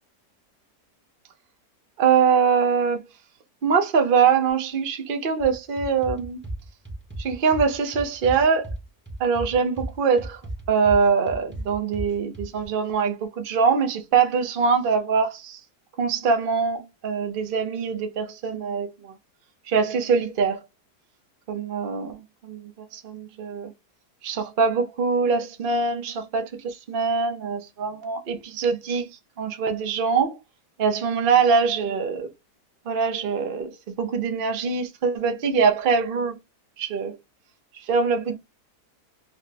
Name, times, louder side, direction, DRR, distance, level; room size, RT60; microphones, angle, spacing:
voice 1, 2.0-3.0 3.6-6.4 7.2-8.7 9.2-10.4 10.7-15.6 16.0-19.1 19.7-20.6 21.5-23.7 24.2-30.4 30.8-32.3 32.9-36.4 36.8-37.2 37.9-38.4, right 5 dB, 65° right, 0.5 m, -23 dB
sound 1, 5.4-12.6, right 1 dB, 10° right, 0.5 m, -35 dB
4.2 x 2.0 x 3.2 m
omnidirectional pair, 1.8 m